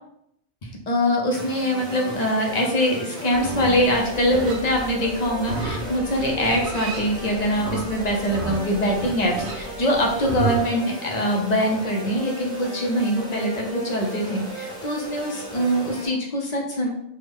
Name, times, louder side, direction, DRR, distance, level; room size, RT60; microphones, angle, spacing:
voice 1, 0.6-16.9, equal, 45° left, 0 dB, 0.6 m, -23 dB
sound 1, 1.3-16.1, right 1 dB, 5° left, 0.6 m, -36 dB
Livestock farm animals working animals, 3.3-10.6, right 3 dB, 80° right, 0.9 m, -32 dB
3.4 x 2.1 x 3.4 m, 0.76 s
omnidirectional pair, 1.1 m